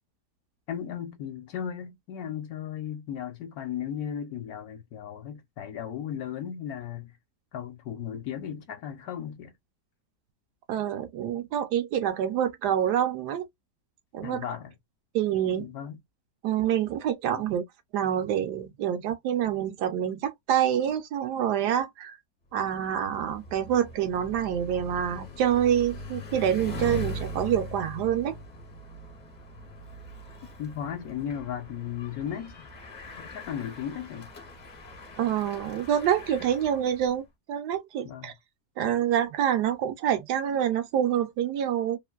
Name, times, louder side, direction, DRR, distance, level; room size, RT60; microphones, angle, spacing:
voice 1, 0.7-7.1 7.5-9.5 14.2-14.7 15.6-16.0 17.3-17.4 30.6-32.7 33.2-34.3 38.0-38.3, left 9 dB, 65° left, 1.1 m, -36 dB
voice 2, 10.7-13.5 14.1-14.4 15.1-15.7 16.4-17.6 17.9-22.2 22.5-28.3 35.2-38.3 38.8-42.0, right 10 dB, 75° right, 1.1 m, -27 dB
Bicycle, 22.5-37.2, left 1 dB, 40° left, 0.7 m, -41 dB
3.0 x 2.5 x 2.2 m
omnidirectional pair, 1.8 m